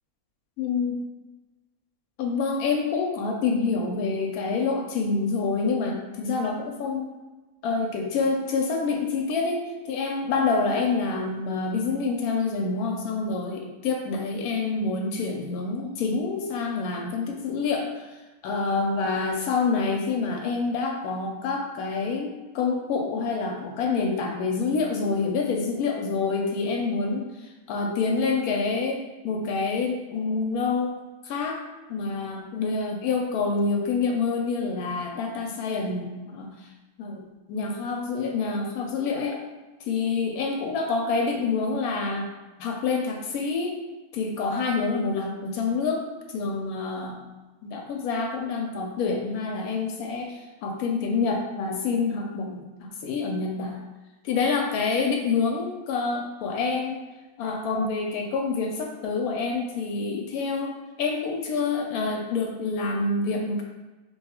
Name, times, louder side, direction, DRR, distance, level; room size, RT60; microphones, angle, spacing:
voice 1, 0.6-1.0 2.2-7.1 7.6-18.1 18.4-31.0 31.2-31.6 31.9-36.5 37.0-39.4 39.9-42.3 42.6-43.8 44.1-47.2 47.6-53.8 54.2-57.0 57.4-63.6, left 4 dB, 85° left, 1 dB, 1.1 m, -27 dB
3.0 x 2.3 x 4.2 m, 1.2 s
omnidirectional pair, 1.5 m